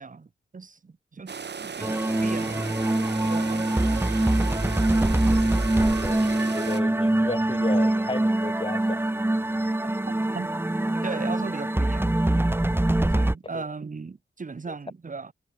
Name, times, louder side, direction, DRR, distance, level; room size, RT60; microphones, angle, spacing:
voice 1, 0.0-4.3 10.3-10.5 11.0-12.1 13.1-15.3, right 4 dB, 40° right, 5.3 m, -38 dB
sound 1, 1.3-6.8, right 6 dB, 55° right, 5.0 m, -36 dB
sound 2, 1.8-13.3, right 1 dB, 10° right, 2.2 m, -24 dB
voice 2, 6.0-9.1 13.5-13.6 14.7-14.8, left 3 dB, 25° left, 7.7 m, -34 dB
wide cardioid pair, 180°, 21 cm